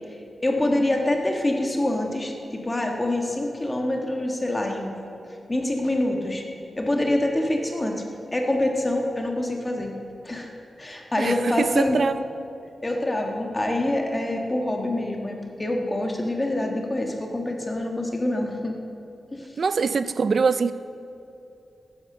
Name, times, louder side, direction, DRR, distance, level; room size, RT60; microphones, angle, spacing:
voice 1, 0.4-4.9 5.5-6.4 6.8-9.9 10.2-10.5 10.8-12.0 12.8-18.7 19.3-19.6, left 1 dB, 15° left, 1.4 m, -25 dB
voice 2, 11.2-12.2 19.6-20.7, right 5 dB, 50° right, 0.4 m, -23 dB
13.5 x 10.0 x 6.6 m
wide cardioid pair, 155°, 0 cm